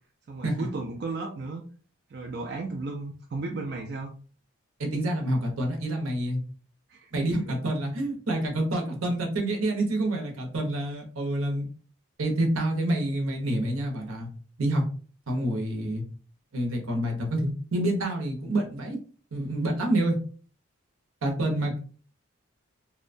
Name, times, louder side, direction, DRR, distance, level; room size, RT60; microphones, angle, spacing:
voice 1, 0.3-1.6 2.1-4.1 6.9-7.3, right 3 dB, 50° right, 0 dB, 0.4 m, -35 dB
voice 2, 4.8-6.4 7.1-11.7 12.2-14.3 14.6-14.8 15.3-16.0 16.5-19.0 19.3-20.2 21.2-21.8, right 1 dB, 80° right, 2 dB, 0.8 m, -27 dB
2.8 x 2.1 x 2.5 m, 0.40 s
head